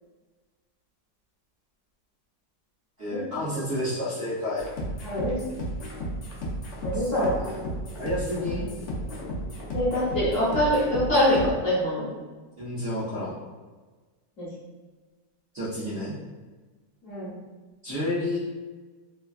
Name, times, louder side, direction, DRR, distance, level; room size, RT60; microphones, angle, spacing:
voice 1, 3.0-4.7 6.9-7.5 8.0-8.7 12.6-13.4 15.5-16.1 17.8-18.4, left 1 dB, 60° right, -10 dB, 0.7 m, -30 dB
sound 1, 4.6-11.5, equal, 80° left, 0.6 m, -34 dB
voice 2, 5.0-5.4 6.8-7.4 9.7-12.1 14.4-14.5 17.0-17.3, left 1 dB, 55° left, -8 dB, 1.1 m, -24 dB
3.2 x 2.3 x 2.3 m, 1.3 s
omnidirectional pair, 2.0 m